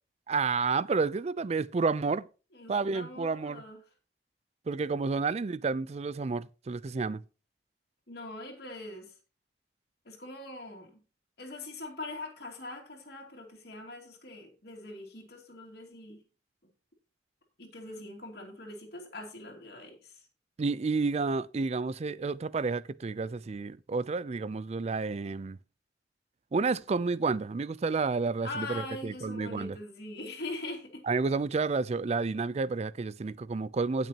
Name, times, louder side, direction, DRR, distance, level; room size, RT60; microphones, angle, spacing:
voice 1, 0.3-2.3 2.7-3.6 4.7-7.2 20.6-25.6 26.5-29.8 31.0-34.1, right 4 dB, 40° right, 0.4 m, -30 dB
voice 2, 2.5-3.8 8.1-9.1 10.1-11.0 11.4-16.2 17.6-20.2 28.4-31.0, left 2 dB, 65° left, 2.5 m, -42 dB
17.5 x 6.1 x 2.9 m
head